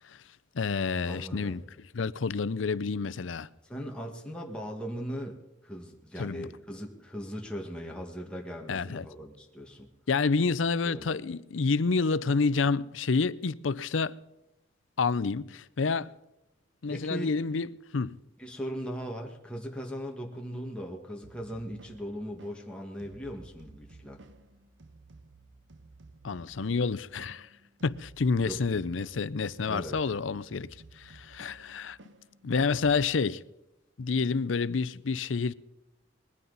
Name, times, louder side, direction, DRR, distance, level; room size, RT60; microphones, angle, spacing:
voice 1, 0.5-1.6 1.9-3.5 6.2-6.5 8.7-9.1 10.1-14.2 15.0-16.1 16.8-18.2 26.2-27.5 27.8-30.7 31.0-32.0 32.4-33.4 34.0-35.5, left 4 dB, 85° left, 0.6 m, -28 dB
voice 2, 1.1-1.6 3.6-9.9 10.8-11.1 16.9-17.3 18.4-24.2 28.5-28.6 29.6-30.0, equal, 5° left, 1.8 m, -39 dB
sound 1, 21.2-33.1, right 2 dB, 70° right, 1.0 m, -54 dB
21.0 x 15.0 x 4.1 m
head